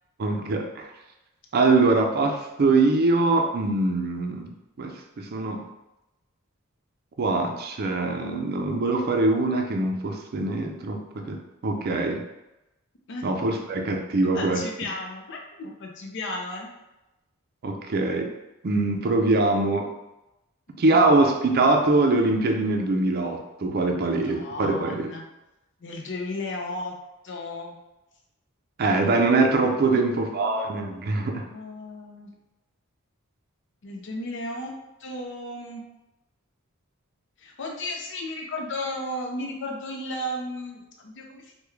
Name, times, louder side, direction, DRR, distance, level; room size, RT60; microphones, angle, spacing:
voice 1, 0.2-0.9 1.5-4.5 4.8-4.9 5.2-5.6 7.2-12.2 13.2-14.6 17.6-18.3 18.6-19.9 20.8-25.1 28.8-31.4, right 3 dB, 50° right, 3 dB, 0.4 m, -23 dB
voice 2, 14.3-16.7 24.1-25.2 25.8-27.0 27.2-27.7 29.8-30.6 31.5-32.3 33.8-34.7 35.0-35.8 37.4-41.6, left 1 dB, 60° left, 1 dB, 0.6 m, -34 dB
3.5 x 2.2 x 3.1 m, 0.96 s
head